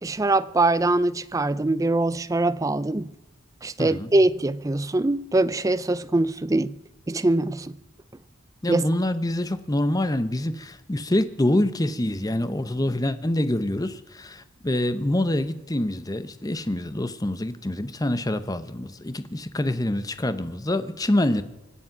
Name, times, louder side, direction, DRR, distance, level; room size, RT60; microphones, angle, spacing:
voice 1, 0.0-3.1 3.6-6.7 7.1-7.7 8.7-8.8, right 2 dB, 15° right, 0.4 m, -23 dB
voice 2, 3.8-4.1 8.6-21.4, left 1 dB, 20° left, 0.8 m, -26 dB
24.5 x 8.4 x 5.9 m
head